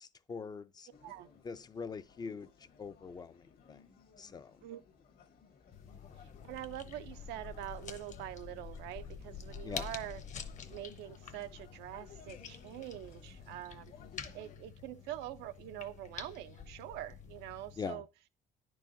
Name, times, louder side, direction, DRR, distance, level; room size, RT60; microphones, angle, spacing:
voice 1, 0.0-0.9 1.4-2.5 2.8-3.3 3.7-3.8 4.2-4.5 9.6-9.9 17.8-18.0, left 5 dB, 25° left, 0.3 m, -42 dB
sound 1, 0.9-14.6, left 6 dB, 65° left, 1.2 m, -60 dB
sound 2, 5.7-17.8, left 7 dB, 45° left, 0.8 m, -48 dB
voice 2, 6.5-10.2 10.7-13.9 14.3-18.1, right 14 dB, 90° right, 0.5 m, -44 dB
9.8 x 4.6 x 2.5 m
cardioid pair, 110°, 17 cm